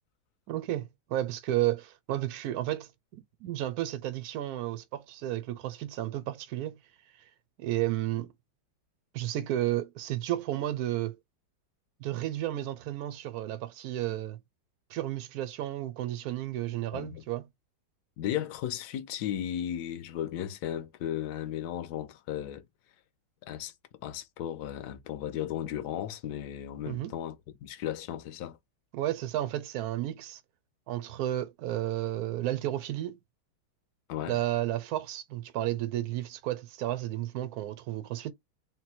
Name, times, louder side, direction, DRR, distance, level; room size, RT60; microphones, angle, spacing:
voice 1, 0.5-6.8 7.6-8.3 9.1-11.2 12.0-14.4 14.9-17.4 26.9-27.1 28.9-30.4 30.9-33.2 34.3-38.3, right 14 dB, 70° right, 0.9 m, -32 dB
voice 2, 16.9-17.2 18.2-22.6 23.4-23.7 24.0-28.6 34.1-34.4, left 11 dB, 65° left, 1.0 m, -35 dB
3.9 x 2.2 x 4.2 m
omnidirectional pair, 2.2 m